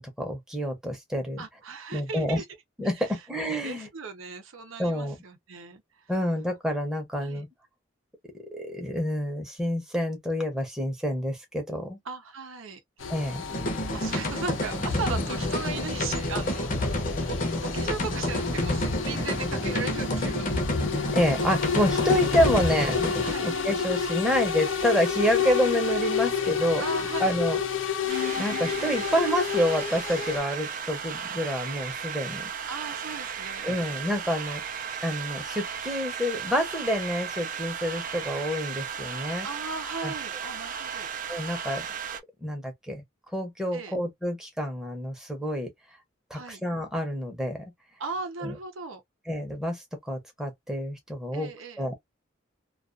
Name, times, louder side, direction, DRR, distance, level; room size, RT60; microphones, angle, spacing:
voice 1, 0.0-1.4 1.9-2.4 2.8-3.9 4.8-5.2 6.1-7.5 8.5-12.0 13.1-13.4 21.1-23.1 23.4-26.8 27.2-27.6 28.4-32.5 33.6-34.6 35.0-39.5 40.0-40.1 41.3-41.8 42.4-43.0 43.3-45.7 46.3-47.6 48.4-48.5 49.3-51.5 51.8-51.9, equal, 5° right, 0.7 m, -28 dB
voice 2, 1.4-2.4 3.0-3.2 3.6-5.8 7.2-7.4 12.1-13.1 13.9-20.6 23.2-23.5 26.8-27.4 32.7-33.8 39.4-41.1 43.7-43.9 46.3-46.6 48.0-49.0 51.3-51.9, right 4 dB, 75° right, 0.6 m, -37 dB
sound 1, 13.0-30.4, left 5 dB, 70° left, 0.7 m, -30 dB
sound 2, 13.5-23.3, left 1 dB, 40° left, 0.7 m, -29 dB
sound 3, 28.1-42.2, right 7 dB, 40° right, 0.4 m, -35 dB
2.4 x 2.3 x 2.5 m
head